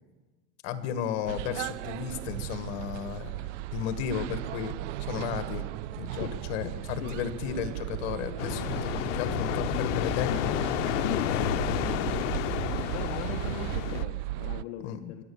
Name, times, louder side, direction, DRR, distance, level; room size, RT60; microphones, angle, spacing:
voice 1, 0.6-3.3 3.7-5.6 5.9-10.6 11.3-12.1 14.8-15.2, left 8 dB, 60° left, 11 dB, 1.5 m, -34 dB
sound 1, 1.3-14.6, right 16 dB, 80° right, 0.5 m, -35 dB
voice 2, 7.0-7.6 11.0-12.1 12.9-15.2, left 11 dB, 40° left, 5 dB, 0.7 m, -39 dB
sound 2, 8.4-14.0, left 15 dB, 75° left, 0.7 m, -31 dB
23.0 x 8.6 x 6.9 m, 1.3 s
supercardioid pair, 160°, 37 cm